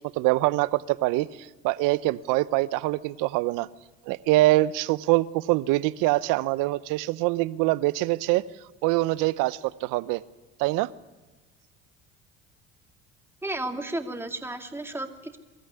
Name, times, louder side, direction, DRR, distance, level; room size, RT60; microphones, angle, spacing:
voice 1, 0.2-3.7 4.1-8.4 8.8-10.2 10.6-10.9, right 19 dB, 70° right, 18 dB, 0.8 m, -24 dB
voice 2, 13.4-15.4, right 1 dB, 5° right, 4 dB, 2.4 m, -33 dB
23.0 x 13.5 x 9.7 m, 1.2 s
hypercardioid pair, 75°, 34 cm